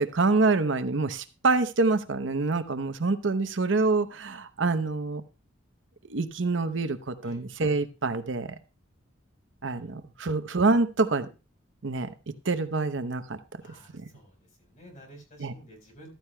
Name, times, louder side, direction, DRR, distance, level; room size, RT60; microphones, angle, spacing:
voice 1, 0.0-5.2 6.1-8.5 9.6-11.3 11.8-13.4 13.9-14.1 15.4-15.5, right 3 dB, 65° right, 10 dB, 0.8 m, -26 dB
voice 2, 13.6-14.4 14.7-16.2, right 1 dB, 40° left, 3 dB, 4.3 m, -51 dB
14.5 x 13.0 x 2.2 m, 0.29 s
head